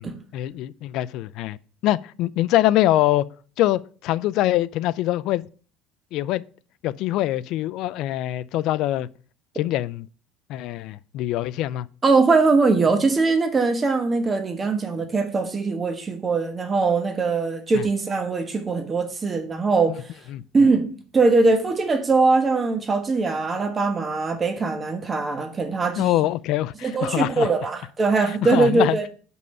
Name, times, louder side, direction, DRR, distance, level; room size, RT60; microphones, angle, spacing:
voice 1, 0.3-1.6 1.8-3.2 3.6-5.5 6.1-6.4 6.8-9.1 9.6-10.1 10.5-11.9 17.7-17.8 20.3-20.4 26.0-27.5 28.4-29.0, left 14 dB, 60° left, 0.3 m, -23 dB
voice 2, 12.0-20.0 20.5-26.2 26.8-29.1, right 3 dB, 20° right, 1.2 m, -21 dB
5.4 x 5.4 x 6.3 m
cardioid pair, 145°, 0 cm